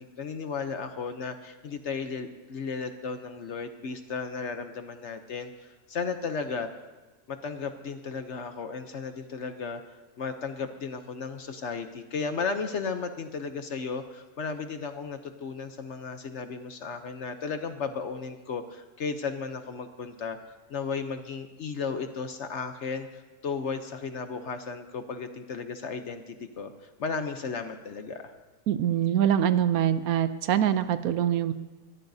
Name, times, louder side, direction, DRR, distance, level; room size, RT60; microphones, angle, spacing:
voice 1, 0.0-6.7 7.3-28.3, left 5 dB, 55° left, 8 dB, 0.9 m, -35 dB
voice 2, 28.7-31.5, right 10 dB, 75° right, 12 dB, 1.0 m, -24 dB
21.0 x 14.5 x 2.7 m, 1.2 s
omnidirectional pair, 1.6 m